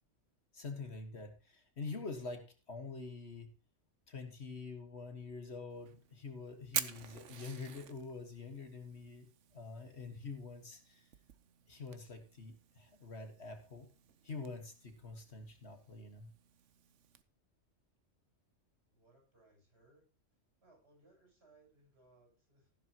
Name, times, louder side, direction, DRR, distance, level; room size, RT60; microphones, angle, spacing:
voice 1, 0.5-3.5 4.1-11.1 11.7-13.9 14.2-16.3, left 4 dB, 60° left, 6 dB, 1.9 m, -46 dB
Fire, 5.7-17.2, right 9 dB, 75° right, 1.2 m, -48 dB
voice 2, 18.9-20.0 20.6-22.7, right 2 dB, 55° right, 0 dB, 8.5 m, -67 dB
14.0 x 11.5 x 3.0 m, 0.35 s
omnidirectional pair, 1.3 m